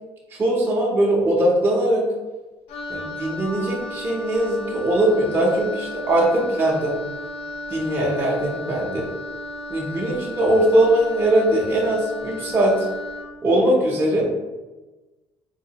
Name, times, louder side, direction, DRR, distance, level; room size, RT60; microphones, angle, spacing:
voice 1, 0.3-2.0 2.9-7.0 7.7-9.1 9.7-12.9 13.4-14.3, right 1 dB, 20° right, -4 dB, 0.6 m, -20 dB
Wind instrument woodwind instrument, 2.7-13.3, left 1 dB, 70° left, 0.5 m, -34 dB
3.8 x 2.5 x 2.8 m, 1.2 s
cardioid pair, 150°, 10 cm